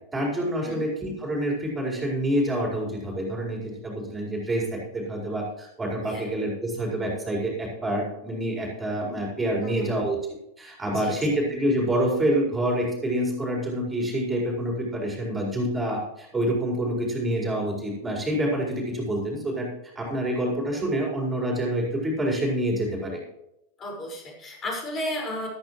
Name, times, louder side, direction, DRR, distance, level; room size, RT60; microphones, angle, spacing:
voice 1, 0.1-10.2 10.6-19.7 19.9-23.2, right 1 dB, 10° right, -2 dB, 4.7 m, -27 dB
voice 2, 23.8-25.5, left 1 dB, 25° left, -1 dB, 5.2 m, -33 dB
14.0 x 12.5 x 3.2 m, 0.84 s
figure-of-eight pair, 90°, 0 cm